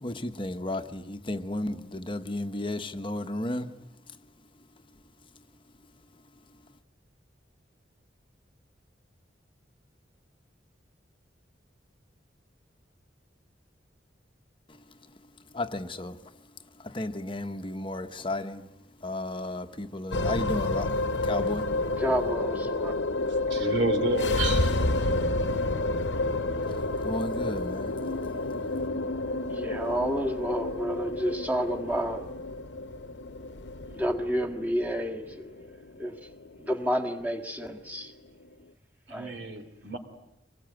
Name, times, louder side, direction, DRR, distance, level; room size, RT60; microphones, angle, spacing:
voice 1, 0.0-3.8 14.7-14.8 15.5-16.2 16.8-18.7 19.0-21.8 26.6-28.1, left 1 dB, 30° left, 1.0 m, -34 dB
sound 1, 20.1-38.6, left 2 dB, 70° left, 1.0 m, -30 dB
voice 2, 22.0-22.9 29.5-32.3 33.9-35.5 36.0-36.2 36.6-38.1 39.1-39.4, equal, 10° right, 1.7 m, -30 dB
voice 3, 23.3-25.1 39.1-40.0, right 2 dB, 70° right, 3.2 m, -31 dB
25.0 x 21.0 x 9.0 m
head